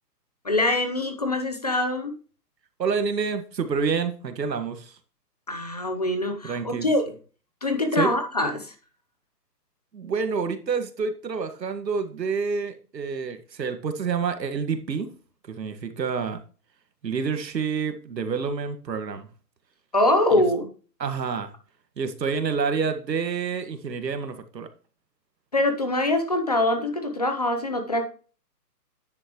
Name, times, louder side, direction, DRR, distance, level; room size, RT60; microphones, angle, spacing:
voice 1, 0.4-2.1 5.5-7.1 7.6-8.7 19.9-20.7 25.5-28.1, left 1 dB, 25° left, 6 dB, 0.7 m, -24 dB
voice 2, 2.8-5.0 6.4-6.9 7.9-8.1 9.9-15.1 15.5-16.4 17.0-19.3 20.4-20.5 21.0-21.5 22.0-24.7, right 5 dB, 80° right, 8 dB, 1.8 m, -28 dB
9.8 x 8.2 x 3.0 m, 0.38 s
hypercardioid pair, 175°, 49 cm